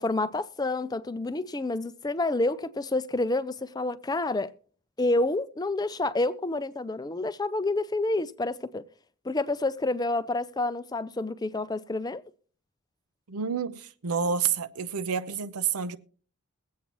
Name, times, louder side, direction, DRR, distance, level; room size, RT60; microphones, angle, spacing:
voice 1, 0.0-4.5 5.0-8.9 9.2-12.2, left 2 dB, 20° left, 0.4 m, -28 dB
voice 2, 13.3-16.0, right 6 dB, 85° right, 0.7 m, -29 dB
22.0 x 8.4 x 3.0 m
head